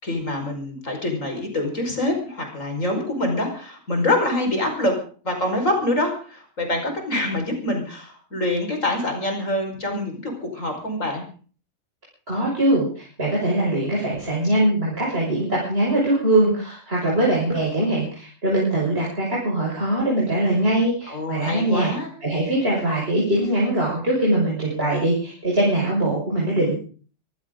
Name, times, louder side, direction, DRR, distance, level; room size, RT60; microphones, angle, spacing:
voice 1, 0.0-5.0 5.2-11.3 21.1-22.1, left 1 dB, 85° left, 3 dB, 5.5 m, -25 dB
voice 2, 12.3-21.9 22.2-26.7, right 1 dB, 50° right, -4 dB, 6.3 m, -22 dB
23.0 x 15.5 x 3.8 m, 0.41 s
omnidirectional pair, 1.3 m